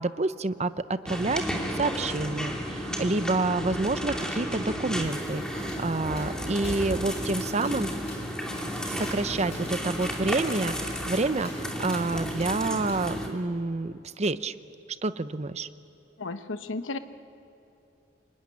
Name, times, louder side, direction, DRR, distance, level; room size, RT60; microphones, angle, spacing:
voice 1, 0.0-7.9 8.8-14.5 15.0-15.7, right 3 dB, 35° right, 13 dB, 0.7 m, -28 dB
sound 1, 1.1-13.3, equal, 5° left, 2.7 m, -32 dB
sound 2, 5.7-5.8 6.2-6.3 6.6-6.8 7.1-7.2 7.6-7.8 8.1-9.7 10.0-10.1 10.5-10.6 11.0-11.1 11.4-11.6 11.9-12.0 12.4-12.5 12.9-13.0, left 3 dB, 35° left, 7.5 m, -48 dB
voice 2, 16.2-17.0, left 3 dB, 90° left, 10 dB, 1.1 m, -33 dB
26.5 x 22.5 x 9.9 m, 2.8 s
head